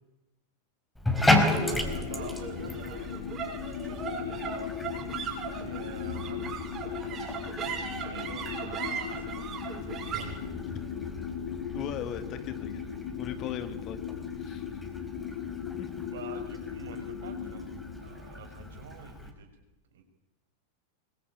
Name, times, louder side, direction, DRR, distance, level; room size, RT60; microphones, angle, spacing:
Bathtub (filling or washing), 1.0-19.3, left 1 dB, 5° left, 4.8 m, -35 dB
sound 1, 1.2-19.3, left 8 dB, 55° left, 4.3 m, -38 dB
sound 2, 1.2-17.7, right 6 dB, 30° right, 6.6 m, -41 dB
voice 1, 1.5-3.2 3.6-4.6 5.6-10.4 16.1-17.6 18.0-19.5 19.9-20.0, right 7 dB, 60° right, 5 dB, 6.2 m, -47 dB
voice 2, 11.7-12.8 13.2-14.1 14.4-14.8 15.7-15.9, left 9 dB, 35° left, 10 dB, 2.4 m, -38 dB
25.0 x 23.0 x 8.8 m, 1.0 s
figure-of-eight pair, 90°, 0 cm